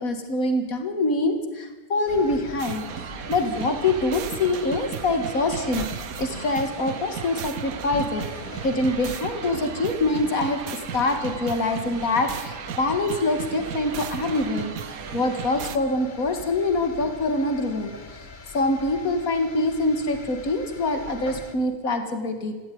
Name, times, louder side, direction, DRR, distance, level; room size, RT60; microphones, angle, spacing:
voice 1, 0.0-2.9 3.3-8.2 8.6-10.6 10.9-18.3 18.5-22.5, left 2 dB, 85° left, 7 dB, 2.5 m, -25 dB
sound 1, 2.1-21.5, left 3 dB, 35° left, 1.6 m, -41 dB
sound 2, 2.6-15.8, right 9 dB, 90° right, 1.3 m, -36 dB
18.5 x 15.5 x 9.4 m, 1.3 s
omnidirectional pair, 1.4 m